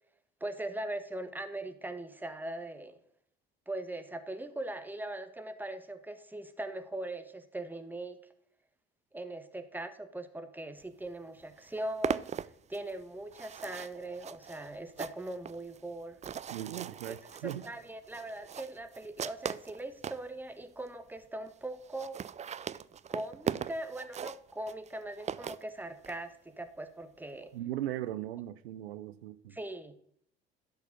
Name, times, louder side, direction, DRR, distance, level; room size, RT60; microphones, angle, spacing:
voice 1, 0.4-3.0 3.7-8.2 9.1-12.3 12.7-16.2 17.4-22.2 23.1-27.5 29.5-29.9, right 1 dB, 5° right, 1.2 m, -40 dB
sound 1, 11.1-11.2 11.4-20.3 20.9-21.0 21.2-21.3 21.5-21.6 21.8-26.2, right 8 dB, 25° right, 0.4 m, -40 dB
voice 2, 16.5-17.6 27.5-29.6, right 13 dB, 85° right, 0.6 m, -38 dB
11.5 x 4.8 x 6.0 m
hypercardioid pair, 55°, 30 cm